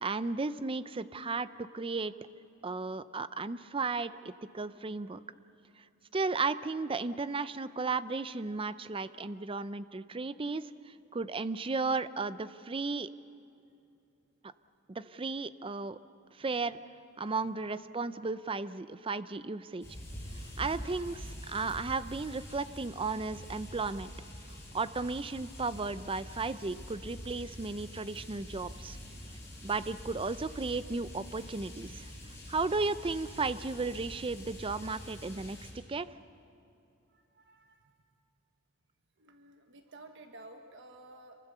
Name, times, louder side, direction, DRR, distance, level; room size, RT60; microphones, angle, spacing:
voice 1, 0.0-2.1 2.6-5.2 6.1-10.7 11.1-13.1 14.9-16.0 16.4-16.8 17.2-19.9 20.6-24.1 24.7-29.0 29.6-32.1 32.5-35.6 35.9-36.1, right 3 dB, 25° right, 14 dB, 0.5 m, -34 dB
sound 1, 19.8-35.7, equal, 15° left, 6.4 m, -46 dB
voice 2, 37.1-37.8 39.2-41.4, right 2 dB, 55° right, 5 dB, 1.3 m, -53 dB
27.0 x 23.5 x 6.8 m, 2.7 s
head